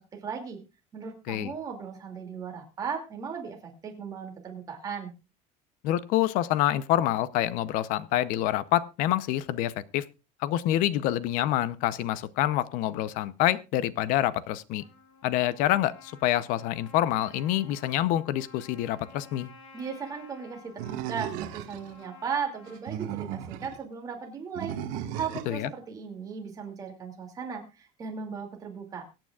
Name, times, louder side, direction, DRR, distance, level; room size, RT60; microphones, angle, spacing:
voice 1, 0.1-0.6 0.9-5.1 19.7-29.0, right 6 dB, 25° right, 2 dB, 2.5 m, -37 dB
voice 2, 5.8-10.0 10.4-14.8 15.2-19.5 25.5-25.7, left 13 dB, 60° left, 17 dB, 0.7 m, -27 dB
Trumpet, 14.8-22.8, left 3 dB, 90° left, 4.4 m, -53 dB
Animal, 20.8-21.9 22.7-23.8 24.6-25.6, right 10 dB, 65° right, 1.4 m, -35 dB
23.5 x 9.0 x 2.4 m, 0.29 s
cardioid pair, 175°, 16 cm